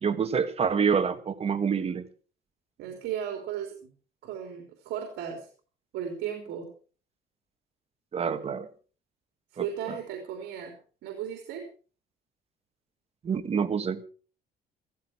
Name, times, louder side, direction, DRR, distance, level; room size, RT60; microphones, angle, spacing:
voice 1, 0.0-2.0 8.1-8.7 9.6-9.7 13.2-14.0, right 6 dB, 35° right, 10 dB, 1.8 m, -27 dB
voice 2, 2.8-3.9 4.2-5.5 5.9-6.7 9.5-10.8 11.0-11.7, right 9 dB, 80° right, 4 dB, 3.6 m, -35 dB
15.0 x 15.0 x 4.7 m, 0.39 s
cardioid pair, 110°, 17 cm